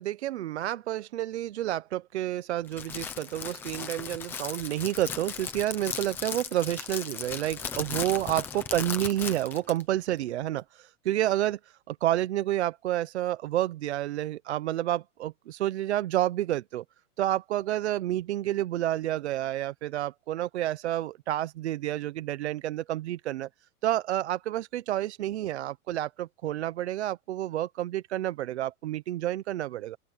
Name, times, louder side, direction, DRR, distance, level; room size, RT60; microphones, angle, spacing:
voice 1, 0.0-16.8 17.2-23.5 23.8-30.0, right 13 dB, 50° right, 0.7 m, -29 dB
Crackle, 2.7-9.8, left 7 dB, 5° left, 0.6 m, -37 dB
open air
supercardioid pair, 175°, 45 cm